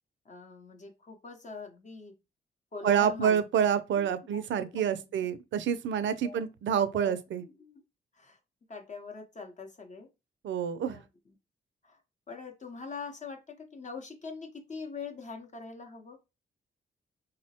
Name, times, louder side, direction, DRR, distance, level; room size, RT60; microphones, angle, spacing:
voice 1, 0.2-2.1 2.7-3.4 3.9-5.0 6.2-6.4 6.7-7.8 8.1-8.4 8.7-10.1 10.9-11.4 11.8-12.0 12.3-16.2, left 4 dB, 40° left, 0.7 m, -43 dB
voice 2, 2.8-7.4 10.4-11.0, right 8 dB, 70° right, 0.4 m, -28 dB
3.8 x 2.1 x 2.8 m
cardioid pair, 75°, 20 cm